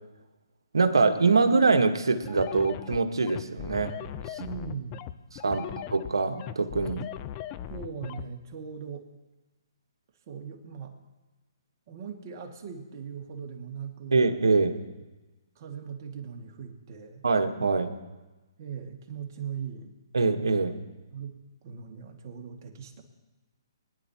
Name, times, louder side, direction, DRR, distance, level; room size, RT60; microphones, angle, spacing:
voice 1, 0.7-4.0 5.4-5.6 5.9-7.0 14.1-14.8 17.2-17.9 20.1-20.7, right 4 dB, 85° right, 7 dB, 1.2 m, -24 dB
sound 1, 2.2-8.2, left 11 dB, 30° left, 0.5 m, -38 dB
voice 2, 4.4-5.0 5.6-5.7 7.7-9.1 10.3-11.0 11.9-14.2 15.6-17.2 18.6-19.9 21.1-21.4 21.6-23.0, right 7 dB, 40° right, 2 dB, 1.9 m, -39 dB
22.0 x 10.5 x 2.9 m, 1.1 s
hypercardioid pair, 145°, 2 cm